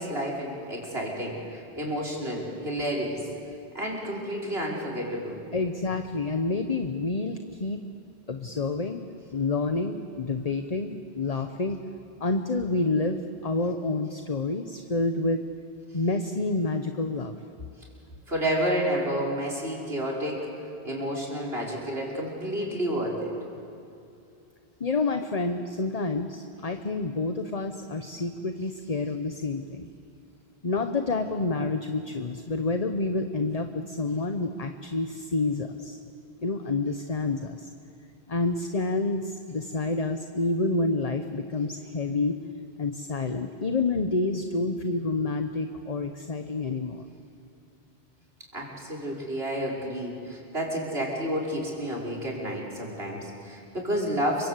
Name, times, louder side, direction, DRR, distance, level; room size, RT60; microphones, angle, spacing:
voice 1, 0.0-3.2 3.7-5.4 18.3-20.5 20.8-23.3 48.5-54.5, equal, 70° right, -2 dB, 5.8 m, -30 dB
voice 2, 5.5-7.8 8.3-9.0 9.3-11.8 12.2-15.4 15.9-17.4 24.8-29.9 30.6-36.0 36.4-37.7 38.3-42.4 42.8-47.0, left 3 dB, 40° left, 6 dB, 1.1 m, -28 dB
29.0 x 24.5 x 8.2 m, 2.5 s
omnidirectional pair, 1.1 m